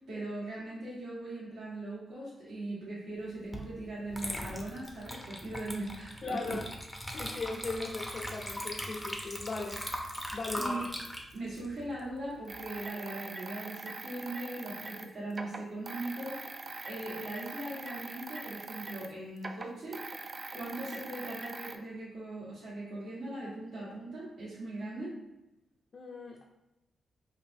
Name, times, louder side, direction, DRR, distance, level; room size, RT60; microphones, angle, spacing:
voice 1, 0.1-6.6 10.5-10.9 11.3-20.0 20.5-25.1, right 2 dB, 70° right, -9 dB, 1.5 m, -40 dB
Water / Liquid, 3.5-3.7 4.1-12.6, equal, 5° left, 0.6 m, -40 dB
voice 2, 6.2-6.7 7.1-9.8 10.3-10.8 25.9-26.4, left 3 dB, 45° left, -1 dB, 0.5 m, -38 dB
sound 1, 12.5-19.1 19.4-21.8, right 3 dB, 35° right, 0.3 m, -43 dB
5.0 x 2.5 x 2.6 m, 0.95 s
cardioid pair, 100°, 0 cm